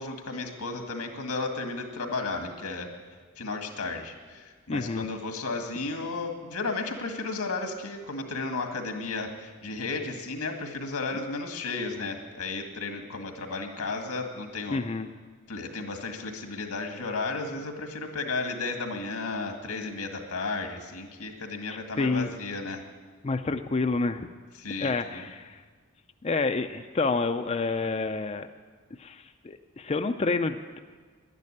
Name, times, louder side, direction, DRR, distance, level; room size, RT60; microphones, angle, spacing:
voice 1, 0.0-2.9 3.4-14.8 15.5-22.8 24.6-25.3, left 3 dB, 90° left, 4 dB, 2.0 m, -33 dB
voice 2, 4.7-5.1 14.7-15.1 21.7-22.3 23.2-24.3 24.8-25.6 26.2-28.5 29.0-30.8, left 3 dB, 30° left, 7 dB, 0.4 m, -28 dB
11.0 x 11.0 x 9.9 m, 1.5 s
head